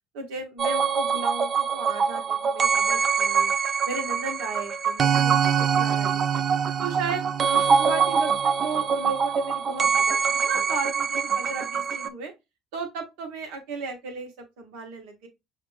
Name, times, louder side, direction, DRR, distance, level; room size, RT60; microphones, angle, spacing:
voice 1, 0.1-3.5 3.8-6.4 6.8-12.3 12.7-15.3, right 4 dB, 75° right, 4 dB, 1.2 m, -35 dB
sound 1, 0.6-12.1, right 6 dB, 40° right, 0.4 m, -24 dB
5.7 x 2.5 x 3.2 m, 0.23 s
hypercardioid pair, 70°, 0 cm